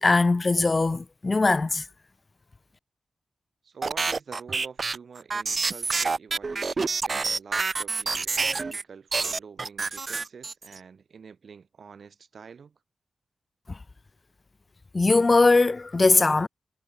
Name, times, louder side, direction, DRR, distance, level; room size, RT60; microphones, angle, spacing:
voice 1, 0.0-1.8 13.7-13.8 14.9-16.5, left 3 dB, 30° left, 0.4 m, -20 dB
voice 2, 3.6-12.8, right 6 dB, 60° right, 1.4 m, -47 dB
sound 1, 3.8-8.8 9.1-10.8, right 4 dB, 40° right, 0.4 m, -27 dB
wide cardioid pair, 125°, 0 cm